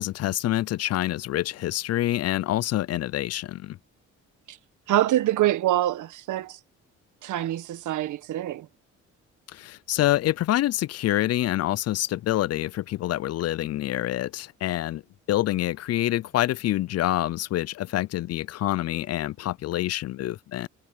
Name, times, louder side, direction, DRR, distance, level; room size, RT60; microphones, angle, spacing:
voice 1, 0.0-3.8 9.5-15.0 15.3-20.7, left 14 dB, 55° left, 0.4 m, -26 dB
voice 2, 4.9-6.6 7.2-8.7, right 13 dB, 80° right, 1.5 m, -25 dB
cardioid pair, 90°, 30 cm